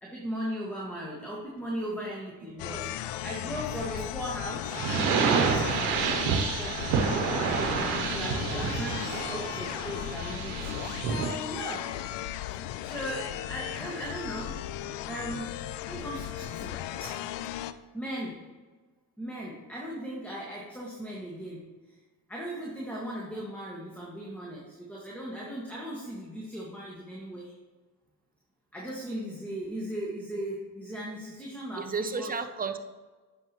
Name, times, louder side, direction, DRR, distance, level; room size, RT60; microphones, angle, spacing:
voice 1, 0.0-6.8 7.1-11.9 12.8-14.6 15.1-17.2 17.9-18.4 19.2-22.0 22.3-27.5 28.7-32.3, equal, 5° left, -4 dB, 1.7 m, -38 dB
sound 1, 2.6-17.7, left 13 dB, 75° left, 0.5 m, -36 dB
voice 2, 2.6-3.1 31.8-32.8, right 5 dB, 20° right, 8 dB, 0.7 m, -34 dB
sound 2, 4.7-11.4, right 6 dB, 90° right, 0.9 m, -28 dB
9.0 x 5.7 x 3.0 m, 1.3 s
supercardioid pair, 60°, 43 cm